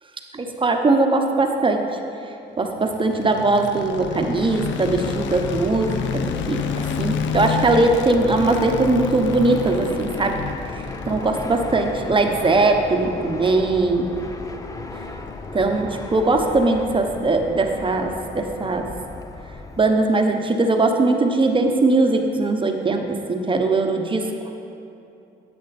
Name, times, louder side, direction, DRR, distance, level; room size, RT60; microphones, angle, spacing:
voice 1, 0.3-1.8 2.2-10.4 10.7-14.1 15.5-18.9 19.8-24.3, right 2 dB, 25° right, 4 dB, 1.0 m, -20 dB
sound 1, 2.8-16.9, left 8 dB, 70° left, 0.5 m, -31 dB
Fixed-wing aircraft airplane, 3.7-20.1, left 2 dB, 15° left, 0.6 m, -35 dB
10.5 x 7.7 x 4.2 m, 2.7 s
cardioid pair, 90°, 20 cm